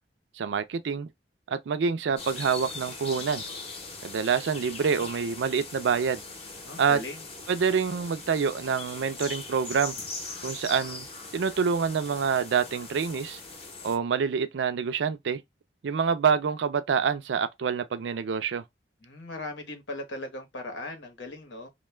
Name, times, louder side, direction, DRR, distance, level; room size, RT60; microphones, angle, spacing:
voice 1, 0.4-1.1 1.5-3.4 4.0-6.2 6.8-7.0 7.5-10.0 10.4-11.1 11.3-13.4 13.8-15.4 15.8-18.6, right 6 dB, 75° right, 0.4 m, -26 dB
sound 1, 2.2-14.0, left 3 dB, 35° left, 0.7 m, -40 dB
voice 2, 6.6-7.3 19.0-21.7, left 2 dB, 80° left, 0.9 m, -38 dB
2.2 x 2.2 x 3.1 m
head